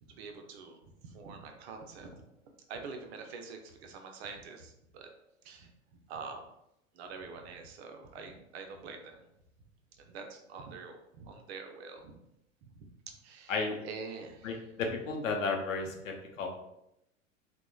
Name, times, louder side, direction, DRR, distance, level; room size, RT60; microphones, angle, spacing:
voice 1, 0.0-5.1 5.4-5.7 6.1-6.5 6.9-9.3 10.0-12.2 12.6-13.5 13.8-14.5, right 4 dB, 55° right, 4 dB, 0.5 m, -46 dB
voice 2, 14.4-16.5, left 4 dB, 80° left, 2 dB, 0.6 m, -33 dB
2.9 x 2.1 x 2.2 m, 0.84 s
figure-of-eight pair, 85°, 39 cm